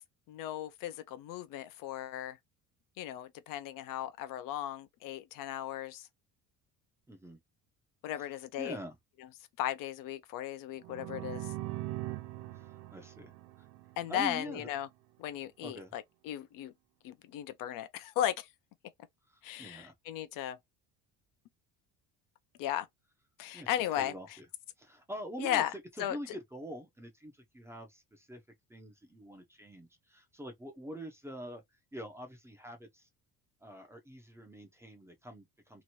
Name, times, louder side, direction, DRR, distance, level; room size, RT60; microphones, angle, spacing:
voice 1, 0.3-2.4 3.0-6.1 8.0-8.8 9.6-11.5 14.0-14.9 15.2-16.7 17.0-18.5 19.4-20.6 22.6-22.9 23.4-24.1 25.4-25.7 26.0-26.4, left 12 dB, 65° left, 0.6 m, -36 dB
voice 2, 7.1-7.4 8.6-9.0 12.5-13.3 13.6-13.7 14.1-14.7 15.6-15.9 19.3-19.9 23.5-23.7 24.0-24.4 24.8-25.6 26.0-28.4 28.7-31.6 31.9-33.1 33.6-35.8, equal, 5° right, 0.6 m, -45 dB
sound 1, 10.8-14.5, right 17 dB, 85° right, 0.5 m, -41 dB
3.0 x 2.5 x 2.9 m
cardioid pair, 150°, 36 cm